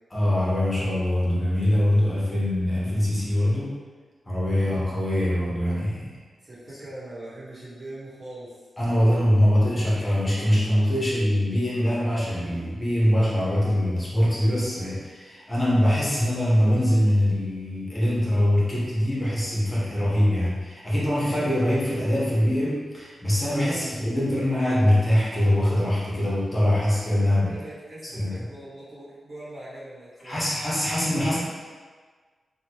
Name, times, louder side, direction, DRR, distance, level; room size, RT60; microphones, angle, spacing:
voice 1, 0.1-3.8 4.3-6.2 8.8-27.5 28.0-28.3 30.2-31.4, left 1 dB, 30° left, -7 dB, 1.0 m, -23 dB
voice 2, 4.5-4.9 6.4-8.7 23.6-23.9 27.5-30.4, right 1 dB, 45° right, -8 dB, 1.2 m, -41 dB
3.2 x 2.3 x 2.9 m, 1.5 s
cardioid pair, 60°, 0 cm